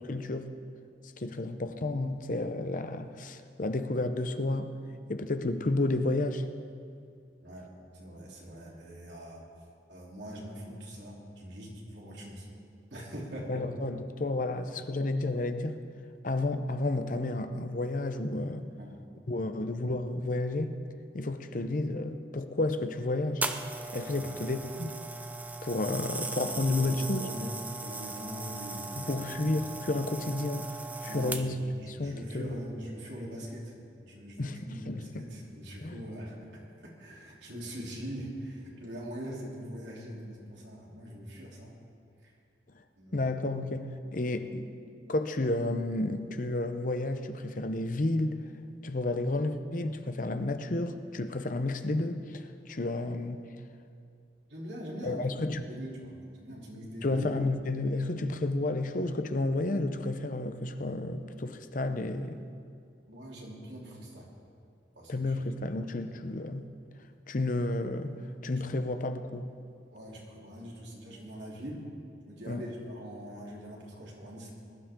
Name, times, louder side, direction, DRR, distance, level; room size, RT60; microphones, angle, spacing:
voice 1, 0.1-0.5 1.2-4.8 5.1-6.5 13.5-15.8 16.2-18.7 19.3-20.8 21.1-23.5 23.9-24.9 25.6-27.2 29.0-31.5 31.8-32.6 34.4-34.6 34.9-35.1 35.8-36.0 42.7-42.8 43.1-44.7 45.1-48.4 48.8-53.4 55.0-55.6 57.0-62.4 65.1-66.7 67.3-68.1 68.4-69.4 72.5-72.6, left 2 dB, 50° left, 9 dB, 0.7 m, -31 dB
voice 2, 7.4-9.4 9.9-12.5 12.9-13.7 18.8-19.3 24.1-24.3 26.4-27.5 27.8-29.2 31.0-31.4 31.7-33.7 34.0-41.7 42.2-42.3 43.0-43.4 52.7-52.8 54.5-55.3 55.7-57.3 63.1-64.3 64.9-65.3 68.8-68.9 69.9-71.8 72.3-74.5, equal, 80° right, -4 dB, 3.4 m, -43 dB
sound 1, 23.4-31.7 32.5-32.7, right 3 dB, 10° right, 0.5 m, -38 dB
20.5 x 11.5 x 3.7 m, 2.4 s
head